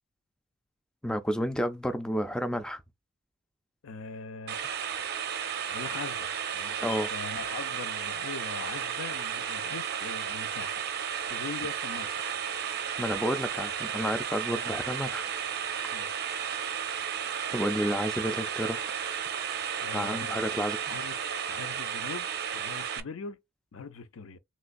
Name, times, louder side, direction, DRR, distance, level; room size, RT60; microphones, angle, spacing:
voice 1, 1.0-2.8 6.8-7.1 13.0-15.2 17.5-18.8 19.9-20.8, equal, 5° left, 0.3 m, -30 dB
voice 2, 3.8-4.6 5.7-10.8 11.3-12.2 14.5-14.7 15.9-16.2 19.8-20.4 20.8-21.2 21.5-23.4 23.7-24.4, left 4 dB, 65° left, 0.5 m, -42 dB
sound 1, 4.5-23.0, right 8 dB, 50° right, 0.5 m, -33 dB
3.2 x 3.1 x 2.5 m
head